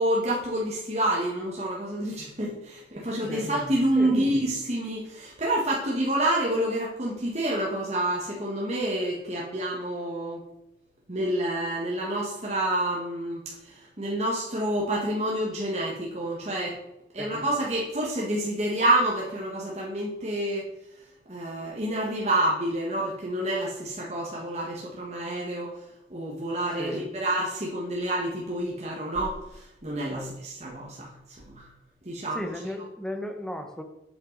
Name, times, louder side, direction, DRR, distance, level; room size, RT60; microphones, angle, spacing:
voice 1, 0.0-10.4 11.1-16.8 17.1-20.7 21.3-25.7 26.1-31.1 31.5-31.7 32.0-32.5, right 1 dB, 40° right, -4 dB, 1.5 m, -28 dB
voice 2, 32.3-33.8, left 1 dB, 5° left, 5 dB, 0.8 m, -35 dB
8.6 x 7.5 x 4.0 m, 0.85 s
head